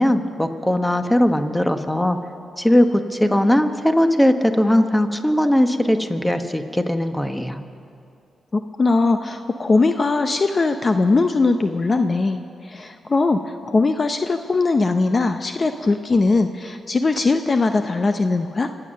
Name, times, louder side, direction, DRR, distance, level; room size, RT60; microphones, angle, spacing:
voice 1, 0.0-2.2 2.6-7.6, left 1 dB, 10° left, 7 dB, 1.2 m, -19 dB
voice 2, 8.5-18.7, left 3 dB, 40° left, 8 dB, 0.7 m, -20 dB
25.0 x 8.9 x 6.5 m, 2.5 s
cardioid pair, 60°, 0 cm